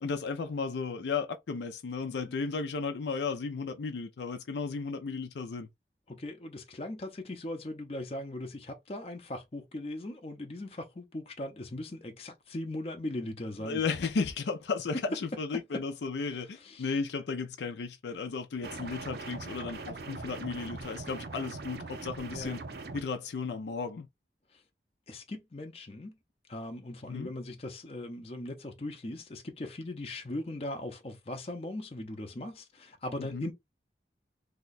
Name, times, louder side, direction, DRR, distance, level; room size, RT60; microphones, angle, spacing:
voice 1, 0.0-5.7 13.6-22.6 22.9-24.1 27.1-27.3 33.2-33.5, left 4 dB, 80° left, 0.4 m, -34 dB
voice 2, 6.1-13.8 15.7-15.8 16.2-16.9 22.3-22.6 24.5-24.6 25.1-26.1 26.5-33.5, left 1 dB, 35° left, 0.5 m, -39 dB
sound 1, 18.6-23.0, right 3 dB, 65° right, 0.6 m, -41 dB
2.8 x 2.2 x 3.9 m
head